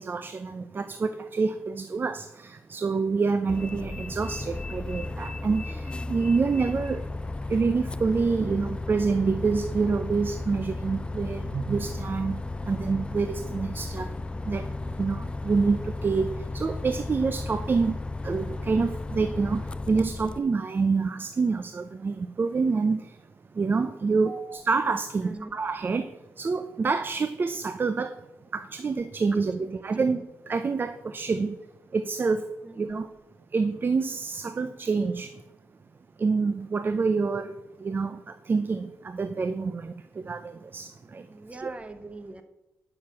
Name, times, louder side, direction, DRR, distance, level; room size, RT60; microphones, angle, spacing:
voice 1, 0.0-7.0 7.5-12.4 12.7-14.1 14.5-14.7 15.0-16.3 16.5-18.0 18.2-23.1 23.6-26.1 26.4-28.1 28.5-31.6 31.9-32.4 32.8-33.1 33.5-35.3 36.2-37.5 37.8-39.9 40.2-41.2 41.6-41.7, right 4 dB, 35° right, 10 dB, 0.6 m, -27 dB
Bus, 3.5-20.4, left 2 dB, 20° left, 0.4 m, -34 dB
voice 2, 24.2-24.7 25.2-25.5 32.6-33.0 41.3-42.4, right 2 dB, 20° right, 9 dB, 1.2 m, -42 dB
9.8 x 6.6 x 5.9 m, 0.98 s
cardioid pair, 85°, 6 cm